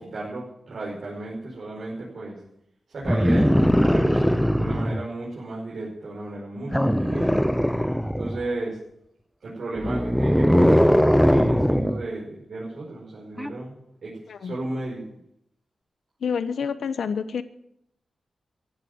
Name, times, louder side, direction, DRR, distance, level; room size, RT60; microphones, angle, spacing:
voice 1, 0.0-2.4 2.9-7.4 8.1-8.8 9.4-13.8 14.0-15.1, right 2 dB, 60° right, -5 dB, 5.3 m, -34 dB
sound 1, 3.1-5.0 6.7-8.5 9.8-12.0 13.4-13.5, equal, ahead, 0.6 m, -20 dB
voice 2, 16.2-17.4, left 6 dB, 80° left, 12 dB, 1.0 m, -28 dB
16.0 x 11.0 x 7.9 m, 0.77 s
wide cardioid pair, 140°, 0 cm